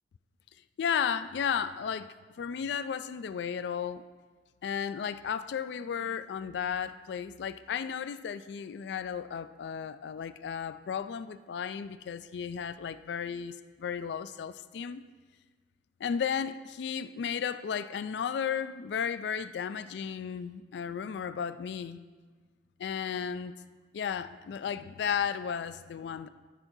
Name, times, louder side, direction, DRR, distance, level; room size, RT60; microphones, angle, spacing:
voice 1, 0.8-4.1 4.6-15.1 16.0-22.0 22.8-23.6 23.9-26.3, left 7 dB, 70° left, 0.3 m, -34 dB
13.5 x 6.0 x 2.7 m
head